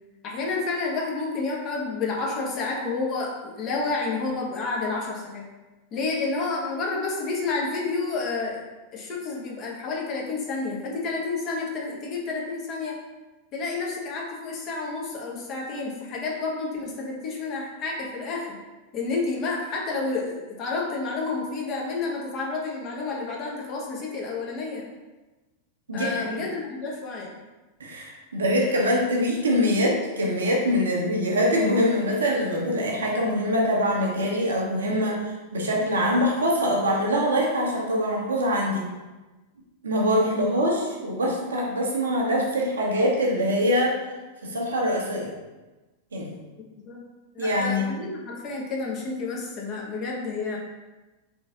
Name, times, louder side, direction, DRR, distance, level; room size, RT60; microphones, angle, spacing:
voice 1, 0.2-5.4 5.9-8.6 8.9-13.0 13.5-18.6 18.9-24.9 25.9-27.3 46.8-47.0 47.3-50.6, left 3 dB, 35° left, -2 dB, 1.2 m, -30 dB
voice 2, 25.9-26.4 27.8-38.9 39.8-44.0 44.4-45.3 46.1-46.3 47.4-47.8, equal, 70° right, -2 dB, 1.0 m, -24 dB
3.8 x 3.7 x 3.7 m, 1.2 s
figure-of-eight pair, 90°, 0 cm